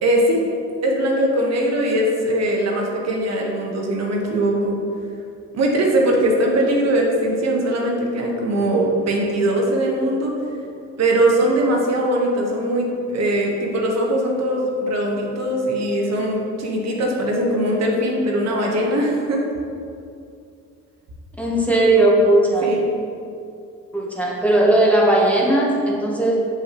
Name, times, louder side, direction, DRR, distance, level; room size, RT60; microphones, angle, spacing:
voice 1, 0.0-0.4 0.8-4.8 5.5-10.3 11.0-19.4 22.6-22.8, right 1 dB, 60° right, -1 dB, 1.1 m, -20 dB
voice 2, 21.4-22.7 23.9-26.4, right 1 dB, 5° left, -4 dB, 1.0 m, -17 dB
6.5 x 5.7 x 3.0 m, 2.5 s
cardioid pair, 90°, 30 cm